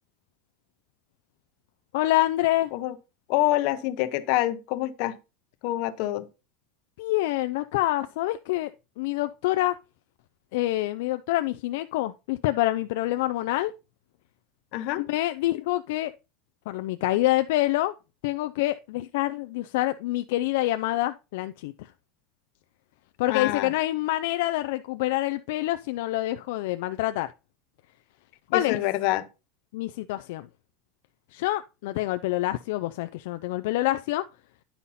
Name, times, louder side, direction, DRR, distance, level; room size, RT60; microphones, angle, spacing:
voice 1, 1.9-2.7 7.0-8.7 9.0-9.7 10.5-13.7 15.0-16.1 16.7-17.9 18.2-21.9 23.2-27.3 28.5-28.8 29.7-30.5 31.3-34.2, left 16 dB, 70° left, 0.4 m, -26 dB
voice 2, 3.3-5.2 5.6-6.3 14.7-15.0 23.3-23.7 28.5-29.3, left 15 dB, 50° left, 0.7 m, -26 dB
9.8 x 5.6 x 4.1 m
supercardioid pair, 175°, 0 cm